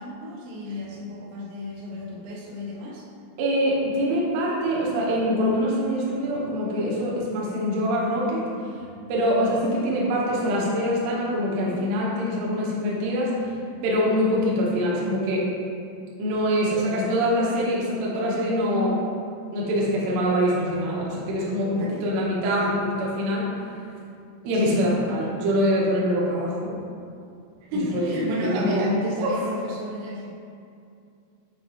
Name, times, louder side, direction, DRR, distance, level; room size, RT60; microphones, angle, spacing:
voice 1, 0.0-3.1 21.7-22.1 24.5-24.9 27.6-30.3, left 1 dB, 90° right, -4 dB, 3.7 m, -31 dB
voice 2, 3.4-8.4 9.1-13.3 13.8-15.5 16.2-19.0 19.5-23.5 24.4-26.7 27.9-28.8 29.2-29.3, equal, 75° right, -5 dB, 2.6 m, -24 dB
8.7 x 4.0 x 2.9 m, 2.4 s
omnidirectional pair, 5.9 m